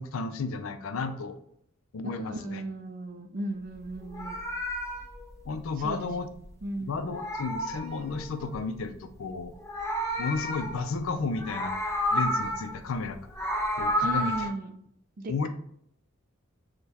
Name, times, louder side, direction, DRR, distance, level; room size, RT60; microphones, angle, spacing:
voice 1, 0.0-1.4 1.9-2.6 5.5-6.3 6.8-9.5 10.2-11.7 12.1-13.2 13.8-14.5 15.3-15.5, left 4 dB, 70° left, 9 dB, 0.4 m, -33 dB
voice 2, 2.0-4.4 5.8-6.0 6.6-7.2 14.0-14.8 15.2-15.5, right 1 dB, 40° right, 5 dB, 0.4 m, -36 dB
Meow, 3.9-6.6 6.9-8.6 9.4-11.0 11.3-12.8 13.1-14.5, equal, 15° left, 0.6 m, -31 dB
6.4 x 2.2 x 2.8 m, 0.69 s
head